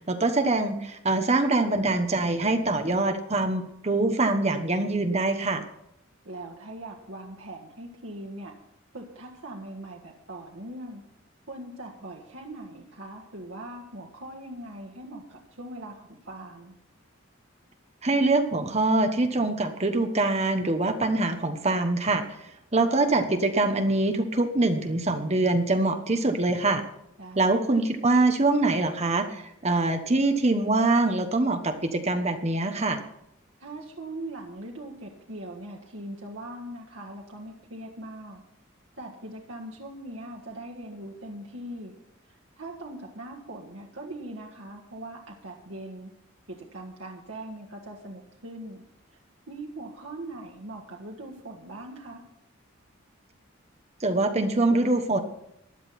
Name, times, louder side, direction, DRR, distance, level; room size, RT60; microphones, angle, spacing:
voice 1, 0.1-5.6 18.0-22.2 22.7-26.8 27.4-33.0 54.0-55.2, right 2 dB, 35° right, 7 dB, 1.1 m, -24 dB
voice 2, 6.2-8.6 8.9-11.0 11.5-16.7 27.2-27.7 33.6-38.4 39.0-41.9 42.3-46.1 46.5-48.8 49.5-52.2, right 1 dB, 75° right, -1 dB, 1.7 m, -41 dB
15.5 x 11.0 x 4.3 m, 0.79 s
head